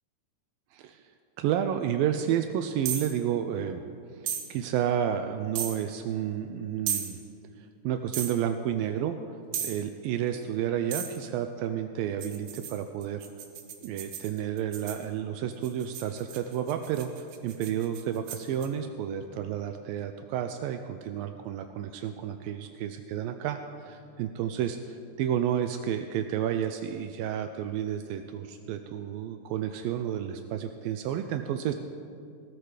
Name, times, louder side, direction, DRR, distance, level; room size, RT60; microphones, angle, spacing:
voice 1, 1.4-3.8 4.5-7.2 7.6-9.2 9.6-13.3 13.8-31.7, right 9 dB, 90° right, 7 dB, 2.1 m, -31 dB
sound 1, 2.8-3.1 4.3-4.5 5.5-5.8 6.9-7.1 8.1-8.4 9.5-9.8 10.9-11.2 12.2-15.0 15.6-18.7, right 9 dB, 70° right, 3.0 m, -35 dB
18.0 x 13.5 x 5.0 m, 2.4 s
omnidirectional pair, 4.7 m